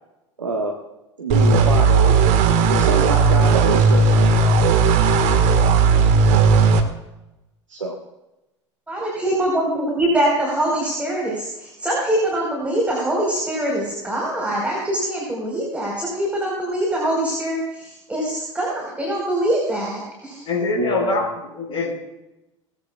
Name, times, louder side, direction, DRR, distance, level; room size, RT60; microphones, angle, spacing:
voice 1, 0.4-0.7 1.2-4.6 7.7-8.0 20.7-21.2, right 2 dB, 80° right, 1 dB, 1.6 m, -26 dB
sound 1, 1.3-6.8, right 4 dB, 50° right, 1.7 m, -15 dB
voice 2, 8.9-20.4, right 1 dB, 10° right, -3 dB, 4.7 m, -23 dB
voice 3, 20.5-21.9, left 4 dB, 35° left, -2 dB, 6.0 m, -25 dB
20.5 x 15.0 x 2.4 m, 0.96 s
figure-of-eight pair, 75°, 16 cm